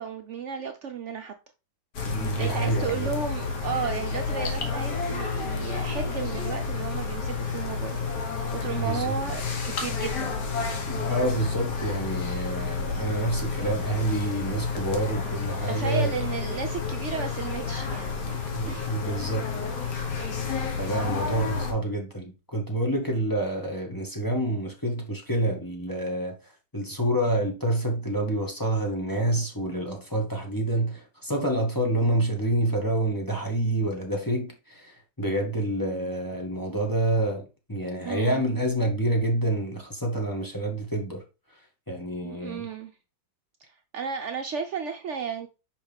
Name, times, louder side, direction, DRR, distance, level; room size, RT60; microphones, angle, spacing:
voice 1, 0.0-1.3 2.4-8.0 8.5-10.3 15.7-18.4 18.6-18.9 38.0-38.4 42.2-42.9 43.9-45.5, right 6 dB, 85° right, 0.6 m, -34 dB
sound 1, 1.9-21.7, left 5 dB, 65° left, 1.8 m, -30 dB
voice 2, 2.0-3.1 8.7-9.2 10.9-16.1 18.5-19.5 20.8-26.4 26.7-41.2 41.9-42.6, right 1 dB, 10° left, 1.3 m, -28 dB
5.6 x 5.4 x 3.4 m
omnidirectional pair, 2.1 m